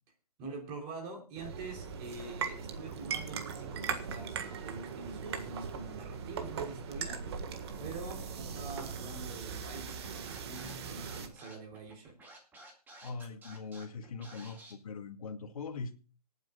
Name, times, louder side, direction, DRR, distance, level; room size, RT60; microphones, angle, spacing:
voice 1, 0.4-7.2 7.8-12.1, right 3 dB, 25° right, 3.5 m, -45 dB
sound 1, 1.3-11.3, right 6 dB, 40° right, 1.6 m, -39 dB
Scratching (performance technique), 9.8-14.7, right 1 dB, 10° right, 2.1 m, -53 dB
voice 2, 13.0-16.0, left 4 dB, 60° left, 2.0 m, -41 dB
26.0 x 9.2 x 2.4 m
hypercardioid pair, 155°, 20 cm